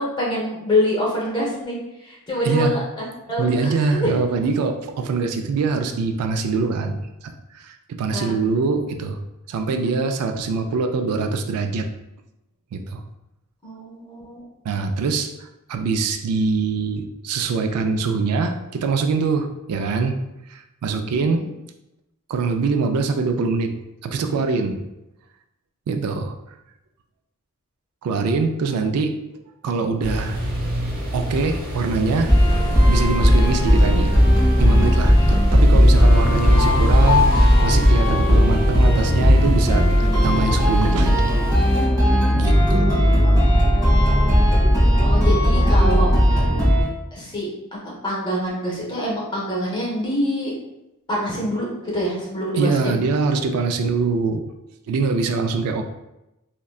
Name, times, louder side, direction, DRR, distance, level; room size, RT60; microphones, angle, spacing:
voice 1, 0.0-2.8 3.3-4.1 8.0-8.4 13.6-14.4 21.3-21.5 28.7-28.9 43.2-44.6 45.0-46.3 47.1-47.5 48.0-50.5 51.1-51.7 51.9-52.9, equal, 20° left, -5 dB, 0.9 m, -26 dB
voice 2, 3.4-7.0 7.2-9.2 9.5-11.9 12.7-13.0 14.6-20.2 20.5-21.4 22.3-23.7 24.0-24.8 25.9-26.4 28.0-29.2 29.6-30.4 31.1-32.3 32.9-34.1 34.6-41.4 42.3-43.1 52.6-54.4 54.9-55.8, right 4 dB, 85° right, 6 dB, 0.3 m, -23 dB
sound 1, 30.0-41.9, equal, 40° right, 0.7 m, -28 dB
sound 2, 32.3-46.8, equal, 15° right, 1.5 m, -16 dB
sound 3, 36.0-39.9, left 6 dB, 65° left, 0.3 m, -27 dB
3.6 x 2.2 x 2.3 m, 0.91 s
head